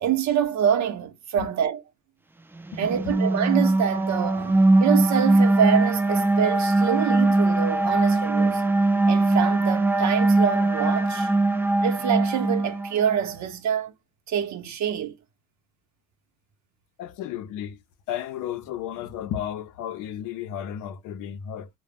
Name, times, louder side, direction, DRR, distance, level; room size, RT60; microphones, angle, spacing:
voice 1, 0.0-1.8 2.8-8.6 9.1-11.3 11.8-13.9 14.3-15.1, right 9 dB, 65° right, 0.7 m, -26 dB
voice 2, 2.7-3.1 17.0-17.8 18.1-21.7, left 10 dB, 85° left, 0.5 m, -33 dB
sound 1, 2.7-13.2, right 2 dB, 10° right, 0.3 m, -21 dB
2.1 x 2.0 x 3.3 m
cardioid pair, 90°, 30 cm